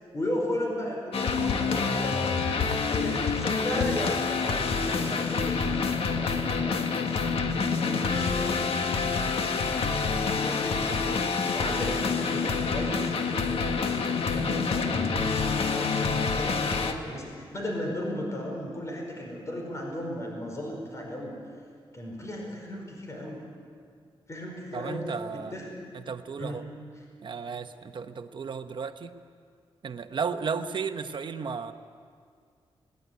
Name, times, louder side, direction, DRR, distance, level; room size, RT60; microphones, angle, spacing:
voice 1, 0.1-2.3 2.9-7.3 7.8-9.4 10.3-11.2 11.5-21.3 21.9-23.4 24.3-25.8 26.4-26.6, left 1 dB, 30° left, 0 dB, 5.1 m, -36 dB
sound 1, 1.1-16.9, left 5 dB, 80° left, 1.6 m, -27 dB
voice 2, 24.7-25.5 25.9-26.7 27.2-29.1 29.8-31.7, right 5 dB, 55° right, 8 dB, 1.1 m, -34 dB
21.0 x 18.5 x 9.6 m, 2.1 s
wide cardioid pair, 105°, 10 cm